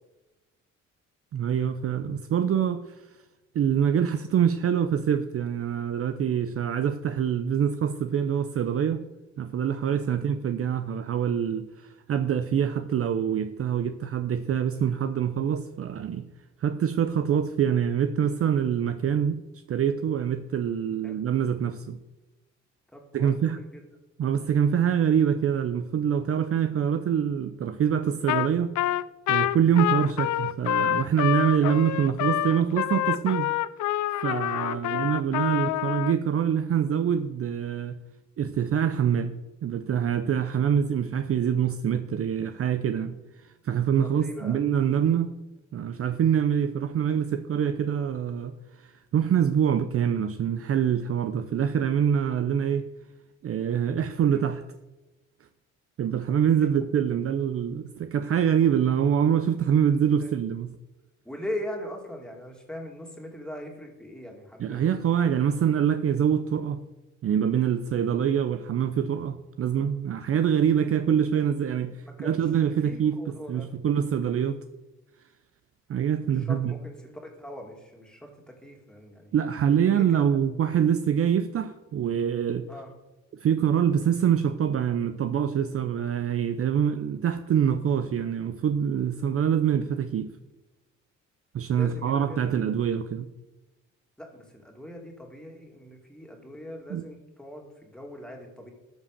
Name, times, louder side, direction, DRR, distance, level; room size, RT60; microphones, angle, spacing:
voice 1, 1.3-2.8 3.5-9.0 9.4-16.3 16.6-19.4 19.7-22.0 23.1-23.6 24.2-28.7 29.3-33.5 34.2-38.0 38.4-39.4 39.6-43.2 43.6-45.3 45.7-48.6 48.8-52.9 53.4-54.6 56.0-60.7 64.6-66.8 67.2-73.2 73.5-74.6 75.9-76.7 79.3-82.7 83.3-90.3 91.5-93.3 96.9-97.0, right 8 dB, 50° right, 0.6 m, -25 dB
voice 2, 22.9-23.8 31.6-31.8 34.6-35.1 44.0-44.6 54.3-54.5 56.6-56.7 60.2-60.3 61.2-64.8 72.2-73.7 76.2-79.4 79.9-80.3 82.7-82.9 91.7-92.5 94.2-98.7, left 1 dB, 5° left, 2.6 m, -41 dB
Trumpet, 28.3-28.5 28.8-36.1, left 13 dB, 70° left, 0.5 m, -27 dB
12.5 x 5.1 x 6.7 m
cardioid pair, 90°, 30 cm